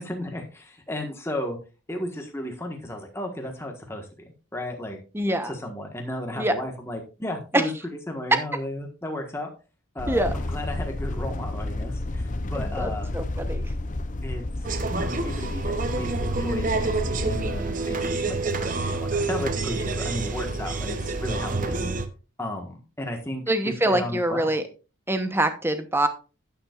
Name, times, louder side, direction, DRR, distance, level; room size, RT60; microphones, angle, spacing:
voice 1, 0.0-1.6 1.9-5.0 5.4-7.7 8.1-9.5 9.9-13.1 14.2-14.4 14.9-22.0 22.4-23.4 23.8-24.5, left 1 dB, 10° left, 2 dB, 1.4 m, -34 dB
voice 2, 5.1-5.5 6.4-6.5 7.5-7.6 10.1-10.3 12.5-13.7 23.5-24.6 25.1-26.1, right 1 dB, 10° right, 9 dB, 0.9 m, -24 dB
sound 1, 10.0-17.6, left 2 dB, 40° left, 0.6 m, -31 dB
sound 2, 14.6-22.1, right 3 dB, 40° right, 0.8 m, -28 dB
11.5 x 9.4 x 2.4 m, 0.33 s
head